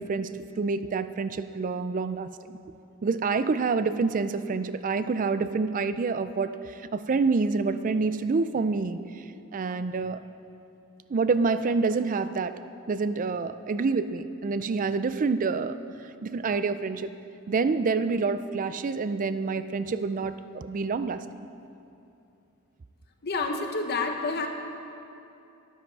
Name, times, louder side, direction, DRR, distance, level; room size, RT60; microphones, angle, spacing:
voice 1, 0.0-2.3 3.0-9.2 9.5-10.2 11.1-12.6 12.9-15.8 16.2-17.1 17.5-21.2, right 4 dB, 35° right, 12 dB, 0.4 m, -27 dB
voice 2, 23.2-24.5, left 3 dB, 45° left, 4 dB, 1.0 m, -28 dB
13.0 x 12.0 x 4.7 m, 2.7 s
head